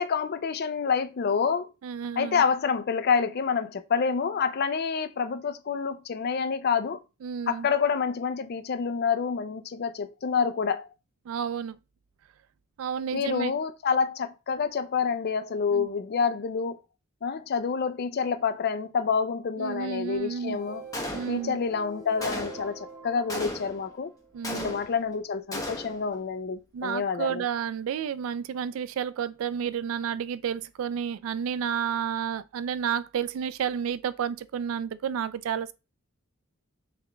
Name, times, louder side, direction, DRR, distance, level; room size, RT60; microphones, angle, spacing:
voice 1, 0.0-1.7 2.2-7.0 7.5-10.9 13.1-16.8 17.2-20.8 21.3-24.1 24.5-27.4, left 6 dB, 50° left, 0.4 m, -28 dB
voice 2, 1.8-2.4 7.2-7.7 11.3-11.8 12.8-13.5 15.7-15.9 19.6-20.6 21.1-21.6 24.3-24.7 26.7-35.7, right 8 dB, 80° right, 0.3 m, -31 dB
sound 1, 20.2-24.5, right 4 dB, 20° right, 0.9 m, -45 dB
Gunshot gunfire, 20.9-21.6 22.2-22.8 23.3-23.9 24.4-25.1 25.5-26.1, left 1 dB, 15° left, 0.7 m, -35 dB
3.6 x 3.5 x 3.3 m
head